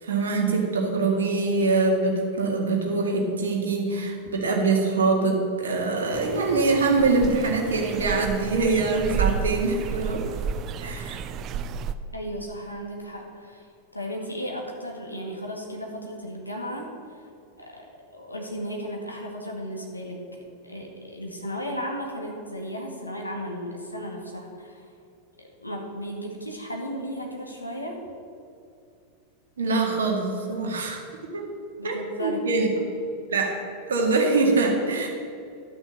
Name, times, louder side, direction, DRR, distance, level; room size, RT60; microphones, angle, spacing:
voice 1, 0.0-10.2 10.8-11.2 29.6-31.0 31.3-31.5 31.8-32.7 33.3-33.6 33.9-35.1, right 3 dB, 65° right, 1 dB, 2.0 m, -24 dB
sound 1, 6.1-11.9, right 6 dB, 35° right, 0.5 m, -31 dB
voice 2, 12.1-13.7 13.9-16.9 17.6-17.9 18.1-24.9 25.4-28.0 31.8-32.4, equal, 85° left, 0 dB, 1.9 m, -35 dB
12.0 x 6.3 x 7.5 m, 2.5 s
figure-of-eight pair, 90°, 0 cm